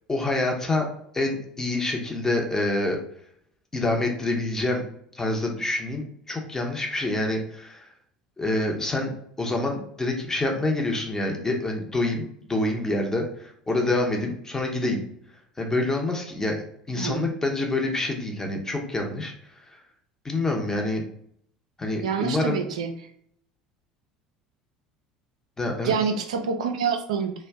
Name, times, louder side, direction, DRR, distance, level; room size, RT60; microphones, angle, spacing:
voice 1, 0.1-0.9 1.1-3.0 3.7-4.8 5.1-7.9 8.4-15.0 15.6-19.3 20.2-21.0 21.8-22.6 25.6-26.0, left 2 dB, 15° left, 1 dB, 0.7 m, -27 dB
voice 2, 17.0-17.3 22.0-22.9 25.8-27.3, right 6 dB, 70° right, 5 dB, 0.4 m, -26 dB
2.5 x 2.1 x 3.5 m, 0.66 s
figure-of-eight pair, 65°, 4 cm